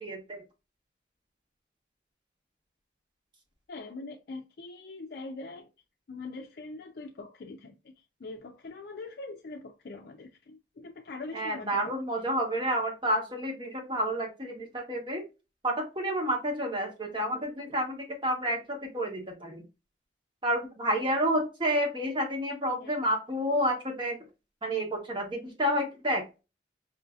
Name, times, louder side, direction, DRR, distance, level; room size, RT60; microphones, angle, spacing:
voice 1, 0.0-0.4 11.3-15.2 15.6-19.6 20.4-24.2 24.6-26.4, equal, 30° right, 1.1 m, -30 dB
voice 2, 3.7-5.7 6.1-7.9 8.2-12.0 22.8-22.9, left 3 dB, 60° left, 0.4 m, -42 dB
4.8 x 2.6 x 2.3 m
head